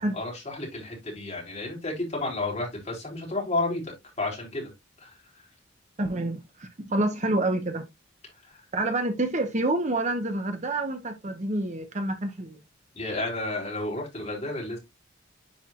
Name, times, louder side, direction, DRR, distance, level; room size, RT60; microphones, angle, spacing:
voice 1, 0.0-4.7 5.0-5.2 8.4-8.6 12.9-14.8, left 2 dB, 30° left, 3.8 m, -32 dB
voice 2, 6.0-7.9 8.7-12.6, right 2 dB, 35° right, 0.9 m, -28 dB
10.0 x 4.5 x 2.4 m
head